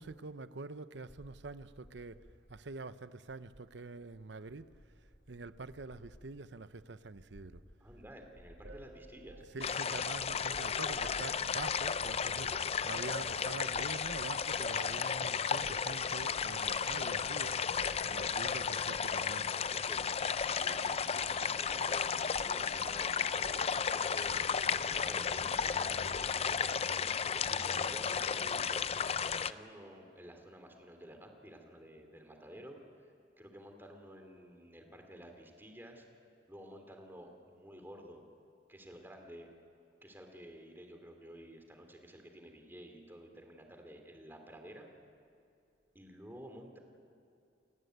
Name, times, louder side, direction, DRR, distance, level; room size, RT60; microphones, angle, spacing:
voice 1, 0.0-2.2 2.5-4.7 5.3-7.6 9.5-17.6 18.1-19.5, right 3 dB, 75° right, 0.8 m, -45 dB
sound 1, 1.1-14.0, equal, 65° left, 4.0 m, -60 dB
voice 2, 7.8-9.4 15.6-15.8 19.5-20.0 20.6-24.4 24.8-26.8 27.3-32.8 33.4-36.0 36.5-38.2 38.7-39.5 40.0-44.9 45.9-46.8, equal, 10° right, 3.0 m, -52 dB
sound 2, 8.6-11.4 11.9-12.3 12.9-13.4 13.7-14.3 14.9-15.0 15.6-15.9 16.4-17.2 17.8-18.1 18.4-18.7 18.9-19.2 20.0-20.6 21.2-21.9 22.3-22.6 22.9-23.1 23.4-23.8 24.2-24.5 24.9-26.6, right 1 dB, 90° right, 7.2 m, -54 dB
sound 3, 9.6-29.5, left 6 dB, 35° left, 0.5 m, -34 dB
29.5 x 15.0 x 9.5 m
head